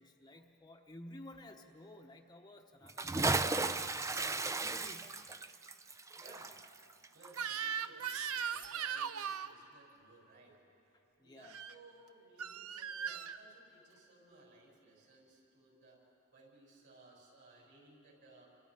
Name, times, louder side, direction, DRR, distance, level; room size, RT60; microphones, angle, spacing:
voice 1, 0.0-5.2 11.2-11.6, left 1 dB, 20° left, 2 dB, 1.0 m, -54 dB
Bathtub (filling or washing) / Splash splatter, 2.9-7.8 8.1-8.2, right 3 dB, 15° right, 0.5 m, -35 dB
sound 1, 4.1-5.0 8.4-9.3, right 6 dB, 40° right, 1.3 m, -54 dB
voice 2, 6.2-6.6 7.1-10.6 11.2-16.0 16.3-18.5, right 2 dB, 55° right, -2 dB, 7.0 m, -61 dB
Crying sobbing / Screech, 7.3-9.5 11.4-11.7 12.4-13.4, right 7 dB, 80° right, 0.7 m, -39 dB
29.0 x 26.0 x 5.0 m, 2.8 s
head